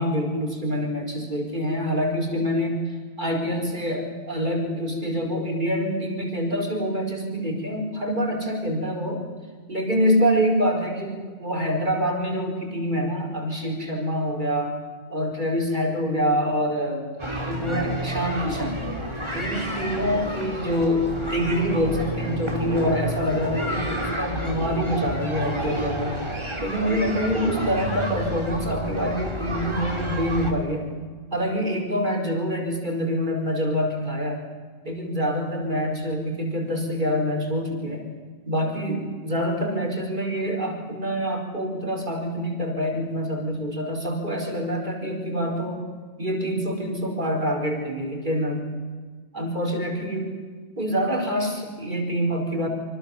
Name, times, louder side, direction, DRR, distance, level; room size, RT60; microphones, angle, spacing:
voice 1, 0.0-9.2 9.7-14.8 15.1-17.0 17.4-18.9 19.3-26.2 26.6-30.9 31.3-34.4 34.8-38.0 38.5-45.9 46.2-48.7 49.3-50.3 50.8-52.7, equal, 45° right, 1 dB, 4.9 m, -26 dB
sound 1, 17.2-30.5, equal, 25° right, 3.4 m, -30 dB
27.0 x 25.5 x 7.2 m, 1.5 s
omnidirectional pair, 1.1 m